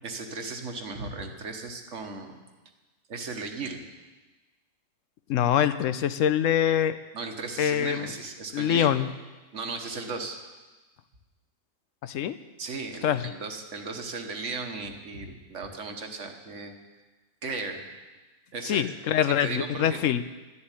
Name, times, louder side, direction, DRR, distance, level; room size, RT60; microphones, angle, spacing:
voice 1, 0.0-2.4 3.1-3.8 7.1-8.9 9.5-10.4 12.6-16.7 17.4-17.8 18.5-18.8 19.4-20.2, right 3 dB, 70° right, 5 dB, 1.6 m, -36 dB
voice 2, 5.3-7.0 7.6-8.1 8.5-9.1 12.0-12.4 13.0-13.3 18.6-20.2, left 10 dB, 85° left, 12 dB, 1.0 m, -24 dB
13.0 x 7.0 x 9.9 m, 1.2 s
omnidirectional pair, 1.3 m